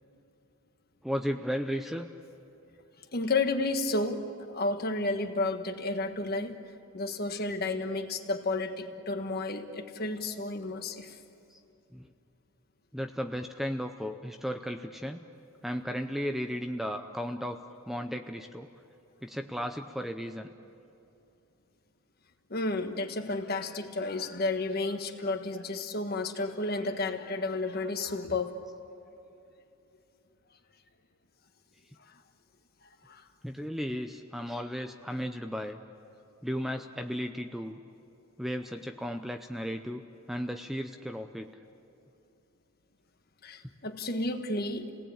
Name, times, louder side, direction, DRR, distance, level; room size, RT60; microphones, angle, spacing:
voice 1, 1.0-2.1 11.5-11.6 11.9-12.1 12.9-15.2 15.6-17.6 17.9-18.7 19.2-20.5 33.4-35.8 36.4-37.8 38.4-40.0 40.3-41.6, equal, ahead, 6 dB, 0.6 m, -35 dB
voice 2, 3.1-6.6 6.9-11.2 22.5-28.5 33.0-33.2 43.4-44.9, left 2 dB, 45° left, 6 dB, 1.4 m, -32 dB
29.5 x 18.5 x 8.8 m, 2.8 s
head